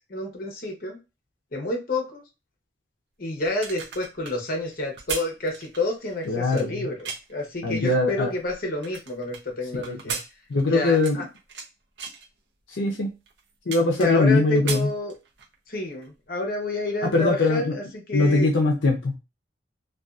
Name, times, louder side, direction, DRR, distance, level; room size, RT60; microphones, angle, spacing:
voice 1, 0.1-1.0 1.5-2.2 3.2-10.2 10.7-11.2 13.9-15.1 15.7-18.5, left 2 dB, 50° left, 2 dB, 0.8 m, -29 dB
sound 1, 3.4-7.4 8.0-9.4 9.8-11.7 12.0-12.3 12.9-13.0 13.3-14.3 14.5-15.5 15.9-16.1, right 6 dB, 65° right, 0.6 m, -36 dB
voice 2, 6.3-6.9 7.6-8.3 9.7-10.1 10.5-11.2 12.8-13.1 13.7-14.9 17.1-17.7 18.1-19.2, left 3 dB, 80° left, 1 dB, 0.6 m, -22 dB
2.5 x 2.3 x 2.3 m, 0.27 s
head